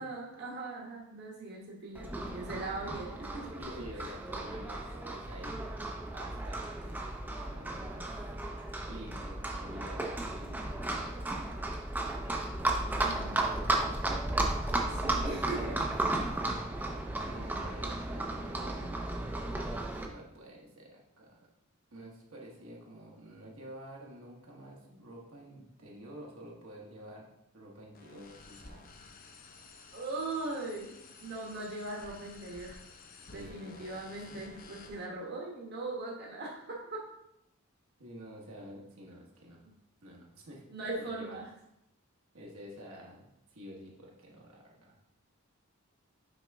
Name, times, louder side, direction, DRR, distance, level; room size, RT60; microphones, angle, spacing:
voice 1, 0.0-3.8 13.0-13.4 14.9-15.8 29.9-30.9 31.2-32.8 33.3-37.0 40.7-41.5, right 2 dB, 50° right, -2 dB, 1.2 m, -40 dB
Livestock farm animals working animals, 1.9-20.1, right 2 dB, 10° right, 0.5 m, -34 dB
voice 2, 3.6-7.2 7.5-8.0 8.9-12.0 13.2-14.4 16.0-16.7 17.2-19.1 20.0-21.5 21.9-27.3 27.5-29.0 33.3-34.2 38.0-39.6 40.0-41.4 42.3-44.9, equal, 70° right, -2 dB, 1.3 m, -49 dB
sound 1, 27.9-35.1, left 3 dB, 40° left, 0.7 m, -53 dB
6.0 x 5.0 x 3.5 m, 0.82 s
head